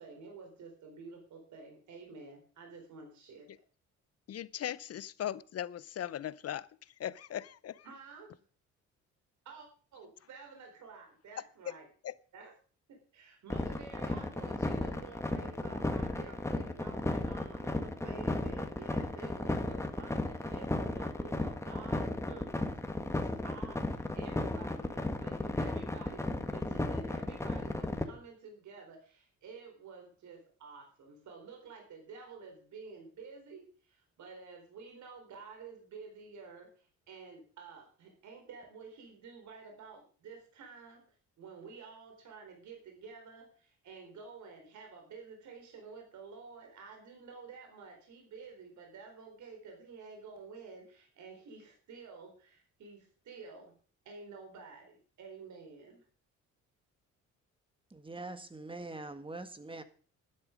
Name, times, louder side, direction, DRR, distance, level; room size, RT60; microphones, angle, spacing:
voice 1, 0.0-3.5 7.8-8.3 9.4-11.9 12.3-12.5 13.1-22.6 23.4-41.0 41.4-53.7 54.0-56.1, right 4 dB, 70° right, 4.2 m, -50 dB
voice 2, 4.3-6.7 7.0-7.9 12.0-12.1, left 11 dB, 55° left, 0.7 m, -38 dB
sound 1, 13.5-28.0, left 2 dB, 10° left, 1.7 m, -34 dB
voice 3, 57.9-59.8, right 2 dB, 15° right, 1.6 m, -43 dB
12.0 x 10.5 x 5.2 m
cardioid pair, 90°, 30 cm